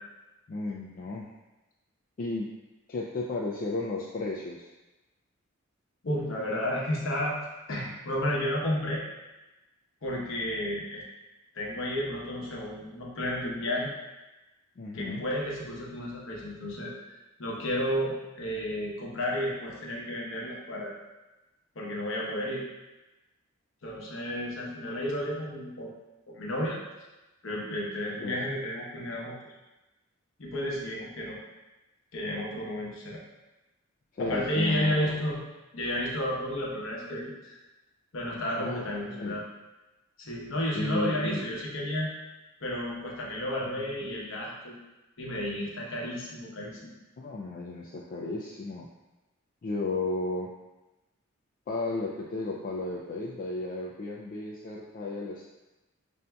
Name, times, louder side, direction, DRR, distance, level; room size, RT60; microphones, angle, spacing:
voice 1, 0.5-1.3 2.2-2.5 2.9-4.7 14.8-15.2 28.2-28.4 34.1-35.2 38.5-39.4 40.7-41.4 43.7-43.8 47.2-48.9 49.6-50.5 51.7-55.4, left 2 dB, 40° left, -4 dB, 0.3 m, -34 dB
voice 2, 6.0-7.4 7.7-9.0 10.0-11.0 11.5-13.9 14.9-20.9 21.7-22.6 23.8-25.9 26.3-26.8 27.4-29.4 30.4-31.4 32.1-33.2 34.2-35.4 35.7-37.6 38.1-39.4 40.2-42.1 42.6-44.8 45.2-46.9, left 1 dB, 65° left, -3 dB, 0.8 m, -32 dB
5.5 x 2.6 x 2.2 m, 1.1 s
head